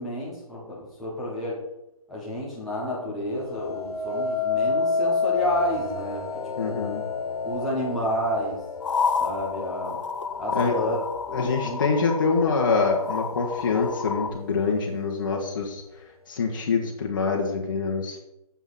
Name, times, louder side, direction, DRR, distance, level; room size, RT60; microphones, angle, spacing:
voice 1, 0.0-1.6 2.1-6.2 6.6-6.8 7.4-8.6 9.2-10.0 10.4-11.8, equal, ahead, -8 dB, 0.5 m, -30 dB
sound 1, 3.4-12.5 13.1-13.5, left 5 dB, 75° left, 1.6 m, -30 dB
voice 2, 6.6-7.0 10.5-10.7 11.3-15.8 16.3-18.2, left 4 dB, 35° left, -1 dB, 1.2 m, -25 dB
sound 2, 8.8-14.3, left 5 dB, 55° left, 0.9 m, -30 dB
7.1 x 6.2 x 7.4 m, 0.87 s
hypercardioid pair, 175°, 19 cm